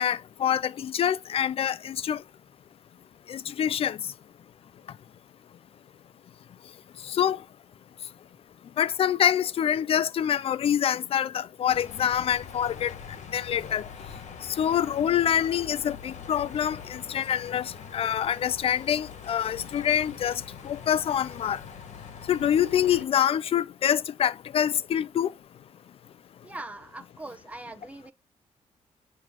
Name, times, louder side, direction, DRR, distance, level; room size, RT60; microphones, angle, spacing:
voice 1, 0.0-2.2 3.3-4.0 7.1-7.4 8.8-12.9 13.3-13.9 14.6-21.6 22.3-25.3, left 9 dB, 50° left, 0.4 m, -26 dB
sound 1, 11.7-23.1, left 6 dB, 65° left, 1.4 m, -43 dB
voice 2, 26.4-28.1, right 2 dB, 10° right, 1.0 m, -41 dB
9.0 x 3.2 x 6.1 m
cardioid pair, 120°, 13 cm